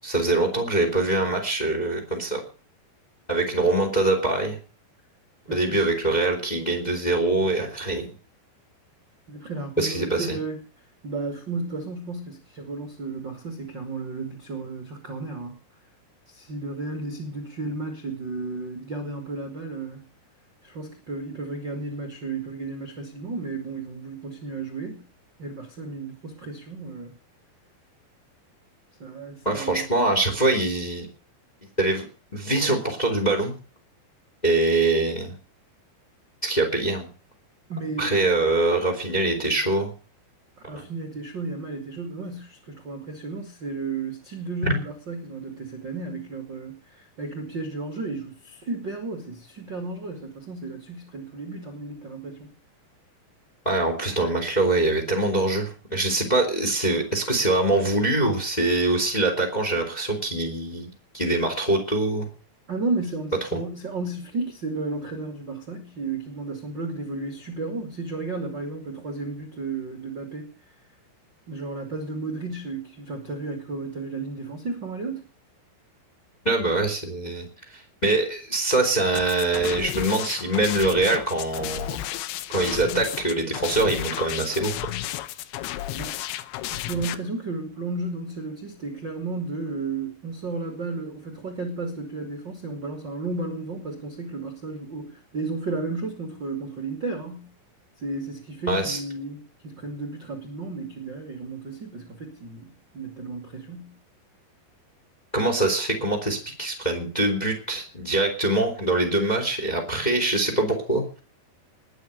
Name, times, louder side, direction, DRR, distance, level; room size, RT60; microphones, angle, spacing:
voice 1, 0.0-2.4 3.3-4.6 5.5-8.1 9.8-10.4 29.4-31.1 31.8-32.0 32.3-33.5 34.4-35.3 36.4-37.1 38.0-39.9 40.7-40.8 44.6-44.8 53.6-60.9 61.1-62.3 76.4-77.4 77.7-82.0 82.5-84.9 98.7-99.0 105.3-111.2, right 2 dB, 10° left, 2 dB, 2.8 m, -24 dB
voice 2, 5.5-5.9 9.3-10.6 11.0-15.6 16.3-20.0 20.6-25.0 25.4-27.1 29.0-29.8 37.7-38.4 40.7-52.5 62.7-70.5 71.5-75.3 85.9-86.2 86.7-97.5 98.0-104.0, right 3 dB, 35° right, 4 dB, 2.3 m, -33 dB
sound 1, 79.2-87.2, left 14 dB, 85° left, 3.2 m, -33 dB
20.5 x 9.1 x 6.7 m, 0.38 s
omnidirectional pair, 5.1 m